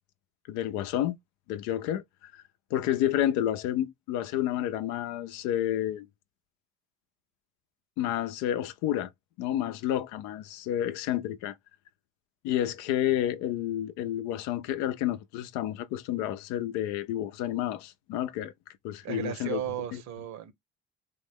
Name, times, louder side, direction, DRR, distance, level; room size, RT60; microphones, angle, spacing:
voice 1, 0.5-1.2 1.5-2.4 2.7-6.1 8.0-9.1 9.4-11.5 12.4-18.5 18.8-19.6 19.9-20.0, left 12 dB, 75° left, 0.6 m, -30 dB
voice 2, 19.0-20.5, right 10 dB, 65° right, 1.0 m, -35 dB
3.7 x 2.1 x 3.5 m
hypercardioid pair, 60°, 30 cm